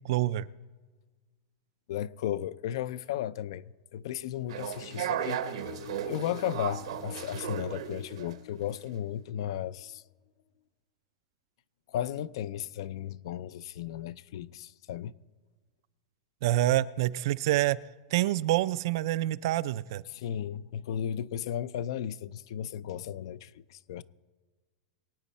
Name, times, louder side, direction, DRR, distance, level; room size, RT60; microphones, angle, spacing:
voice 1, 0.0-0.5 16.4-17.8 18.1-20.0, right 15 dB, 45° right, 0.4 m, -27 dB
voice 2, 1.9-5.4 6.1-10.0 11.9-15.1 20.1-24.0, left 10 dB, 55° left, 0.4 m, -35 dB
sound 1, 4.2-10.0, left 9 dB, 70° left, 1.0 m, -48 dB
sound 2, 4.5-8.4, right 10 dB, 70° right, 0.9 m, -35 dB
23.0 x 9.2 x 4.2 m
supercardioid pair, 180°, 3 cm